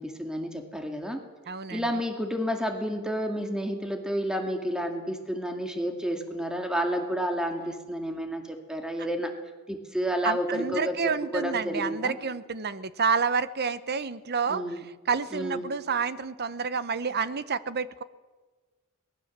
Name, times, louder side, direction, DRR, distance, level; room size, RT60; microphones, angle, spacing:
voice 1, 0.0-1.3 1.7-9.3 9.7-12.2 14.5-14.9 15.3-15.7, equal, 5° right, 4 dB, 2.2 m, -30 dB
voice 2, 1.5-1.8 10.2-14.6 15.1-18.0, right 5 dB, 50° right, 15 dB, 0.9 m, -29 dB
23.0 x 19.5 x 7.5 m, 1.3 s
head